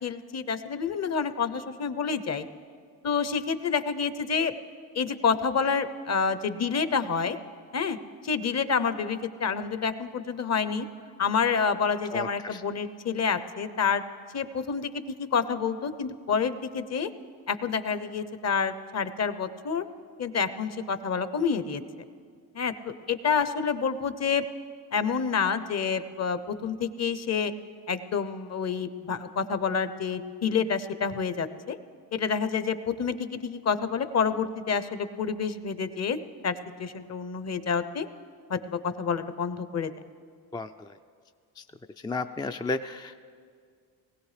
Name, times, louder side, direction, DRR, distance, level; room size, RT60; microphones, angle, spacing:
voice 1, 0.0-2.5 3.0-4.5 4.9-7.4 7.7-8.0 8.2-10.9 11.2-14.0 14.3-17.1 17.5-19.8 20.2-21.8 22.5-22.7 23.1-24.5 24.9-27.5 27.9-31.8 32.1-36.2 36.4-36.5 36.8-38.1 38.5-39.9, left 6 dB, 40° left, 12 dB, 0.8 m, -28 dB
voice 2, 12.1-12.6 40.5-40.9 41.6-41.7 42.0-43.2, left 3 dB, 10° left, 7 dB, 0.3 m, -33 dB
20.0 x 16.5 x 3.3 m, 2.1 s
cardioid pair, 75°, 40 cm